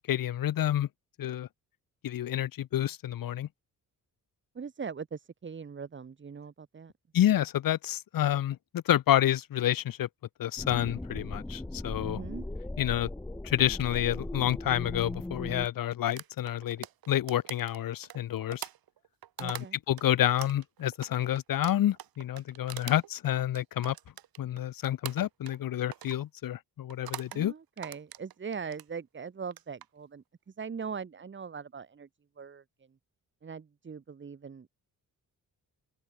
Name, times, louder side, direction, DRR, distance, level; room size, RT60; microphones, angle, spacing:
voice 1, 0.1-0.9 1.2-1.5 2.0-3.5 7.1-10.1 10.4-12.2 12.8-13.1 13.4-18.7 19.4-23.9 24.4-27.5, left 12 dB, 70° left, 1.4 m, -29 dB
voice 2, 4.5-6.9 12.0-12.5 19.4-19.8 27.3-30.2 30.6-32.1 32.4-32.6 33.4-34.7, right 6 dB, 30° right, 4.0 m, -40 dB
sound 1, 10.6-15.7, left 2 dB, 10° left, 1.4 m, -38 dB
sound 2, 16.2-20.0 20.4-24.7 25.0-25.6 25.9-26.2 26.9-27.4 27.8-28.9 29.4-29.9, right 11 dB, 85° right, 3.5 m, -43 dB
open air
wide cardioid pair, 170°, 35 cm